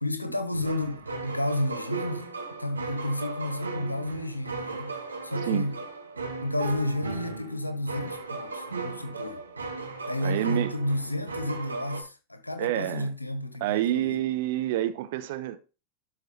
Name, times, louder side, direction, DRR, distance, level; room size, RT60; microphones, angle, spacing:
voice 1, 0.0-5.8 6.4-9.4 10.1-14.3, left 1 dB, 85° left, 1.3 m, -31 dB
sound 1, 0.5-12.0, right 3 dB, 75° right, 2.0 m, -36 dB
voice 2, 10.2-10.7 12.6-13.1 13.6-15.6, right 13 dB, 50° right, 0.9 m, -28 dB
12.5 x 4.7 x 4.5 m
figure-of-eight pair, 90°, 0 cm